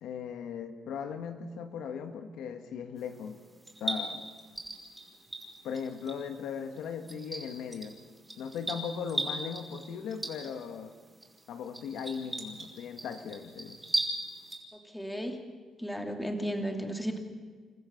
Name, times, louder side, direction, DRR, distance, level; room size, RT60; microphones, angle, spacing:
voice 1, 0.0-3.4 3.8-4.2 5.6-8.0 8.4-10.9 11.5-13.8, left 7 dB, 80° left, 7 dB, 1.5 m, -38 dB
sound 1, 3.0-14.6, right 1 dB, 15° right, 5.1 m, -39 dB
voice 2, 14.7-15.4 15.8-17.2, equal, 5° left, 4 dB, 2.6 m, -34 dB
29.0 x 14.5 x 7.1 m, 1.5 s
cardioid pair, 90°, 0 cm